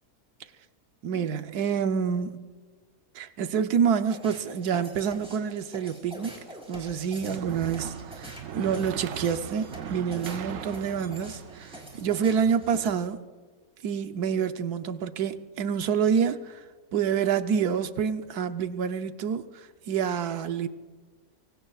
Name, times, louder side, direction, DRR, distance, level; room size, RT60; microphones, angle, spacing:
voice 1, 1.0-2.4 3.1-6.4 6.7-13.2 13.8-16.6 16.9-20.7, right 7 dB, 90° right, 1.3 m, -27 dB
sound 1, 4.0-13.1, equal, 5° right, 4.6 m, -45 dB
sound 2, 6.8-12.9, right 9 dB, 65° right, 0.9 m, -40 dB
25.0 x 24.0 x 2.4 m
omnidirectional pair, 1.6 m